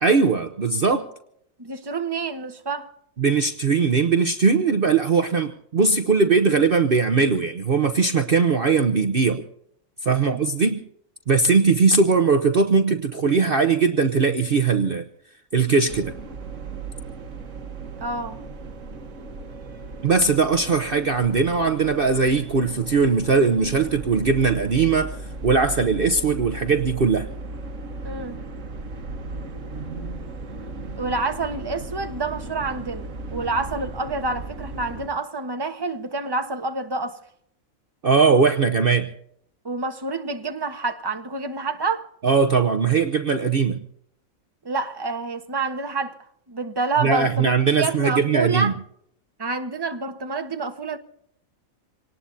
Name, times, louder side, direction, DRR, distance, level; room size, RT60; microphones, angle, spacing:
voice 1, 0.0-1.1 3.2-9.4 10.0-10.8 11.3-15.0 15.5-16.1 20.0-25.2 25.4-27.3 38.0-39.1 42.2-43.8 47.0-48.7, right 4 dB, 45° right, 1.0 m, -20 dB
voice 2, 1.6-2.9 10.1-10.4 18.0-18.4 28.0-28.4 31.0-37.2 39.6-42.1 44.6-46.2 46.5-48.7 49.4-51.0, right 3 dB, 20° right, 1.2 m, -28 dB
sound 1, 15.9-35.1, right 2 dB, 65° right, 1.6 m, -36 dB
26.5 x 19.0 x 2.7 m
omnidirectional pair, 1.5 m